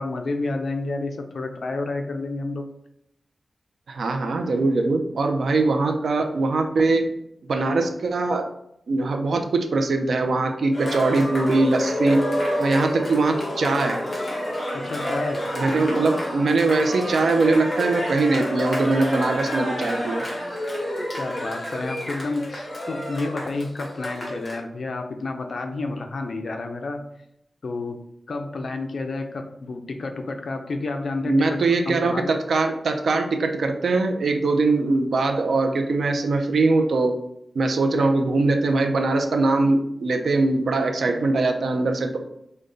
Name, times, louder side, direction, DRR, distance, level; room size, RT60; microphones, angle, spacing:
voice 1, 0.0-2.7 14.7-15.5 21.2-27.1 27.6-28.0 28.3-32.3, left 3 dB, 65° left, 4 dB, 0.5 m, -30 dB
voice 2, 3.9-7.1 7.5-8.5 8.9-12.3 12.6-14.0 15.6-20.3 31.3-37.2 37.5-42.2, right 3 dB, 90° right, 4 dB, 0.5 m, -22 dB
Cheering, 10.7-24.6, equal, 30° left, 1.2 m, -29 dB
5.1 x 2.2 x 3.8 m, 0.78 s
wide cardioid pair, 135°, 0 cm